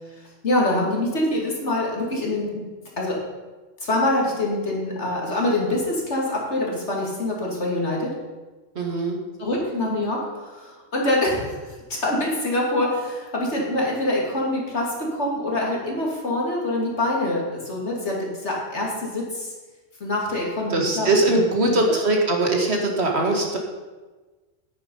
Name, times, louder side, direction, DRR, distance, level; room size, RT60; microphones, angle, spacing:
voice 1, 0.4-2.6 3.0-3.2 3.8-8.1 9.4-19.5 20.0-21.7, left 1 dB, 70° left, -2 dB, 2.9 m, -25 dB
voice 2, 8.8-9.2 20.7-23.6, right 2 dB, 65° right, 1 dB, 2.1 m, -21 dB
10.5 x 9.4 x 5.5 m, 1.3 s
omnidirectional pair, 1.2 m